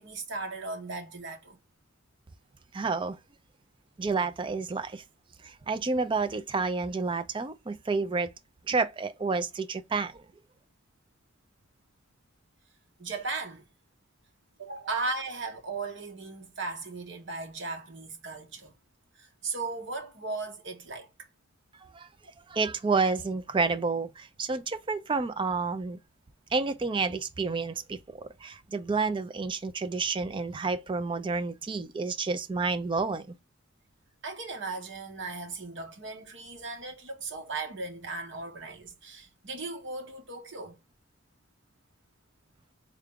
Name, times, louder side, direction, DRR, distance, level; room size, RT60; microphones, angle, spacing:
voice 1, 0.0-1.6 13.0-13.6 14.6-18.7 19.2-21.1 34.2-40.8, right 3 dB, 65° right, 1.1 m, -37 dB
voice 2, 2.7-3.2 4.0-5.0 5.4-8.3 8.7-10.3 21.9-22.1 22.5-26.0 26.5-33.3, right 4 dB, 25° right, 0.4 m, -30 dB
3.7 x 2.3 x 3.5 m
head